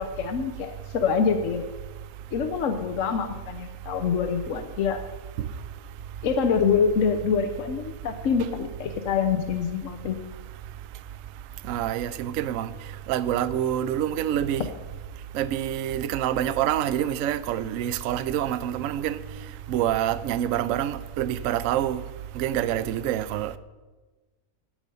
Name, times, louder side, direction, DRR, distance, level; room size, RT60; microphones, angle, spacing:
voice 1, 0.0-1.6 2.3-5.0 6.2-10.2, left 6 dB, 60° left, 1.0 m, -25 dB
voice 2, 11.7-12.7 13.1-14.7 15.3-19.2 19.7-22.0 22.4-23.6, right 11 dB, 70° right, 0.9 m, -26 dB
13.5 x 8.7 x 5.4 m
omnidirectional pair, 1.7 m